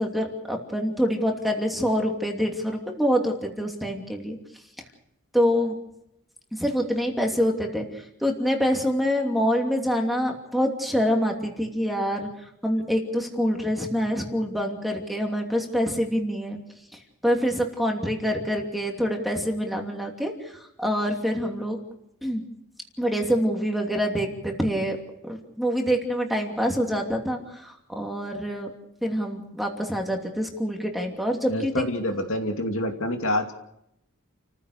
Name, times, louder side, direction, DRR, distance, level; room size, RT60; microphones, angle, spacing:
voice 1, 0.0-4.4 5.3-5.7 6.5-7.8 8.2-12.3 12.6-16.6 17.2-20.3 20.8-21.8 22.2-22.4 23.0-25.0 25.2-28.7 29.0-31.7, equal, ahead, 1 dB, 2.8 m, -26 dB
voice 2, 31.5-33.5, left 1 dB, 65° left, 4 dB, 2.7 m, -27 dB
29.5 x 15.0 x 6.7 m, 0.81 s
head